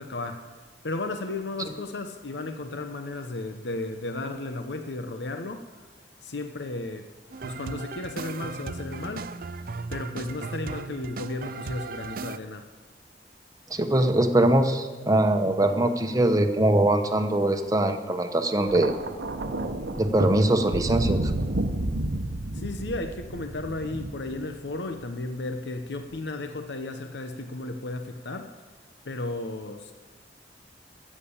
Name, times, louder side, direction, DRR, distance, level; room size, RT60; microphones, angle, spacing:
voice 1, 0.0-5.9 6.2-7.1 7.4-9.3 9.9-12.7 22.5-28.6 29.0-29.9, left 2 dB, 80° left, 6 dB, 0.9 m, -34 dB
sound 1, 7.3-12.4, right 4 dB, 55° right, 0.5 m, -36 dB
voice 2, 13.7-18.9 19.9-21.3, right 1 dB, 20° right, 6 dB, 1.0 m, -22 dB
Thunder, 18.6-25.0 26.0-26.2, right 1 dB, 90° right, 0.9 m, -31 dB
14.0 x 7.5 x 8.4 m, 1.3 s
head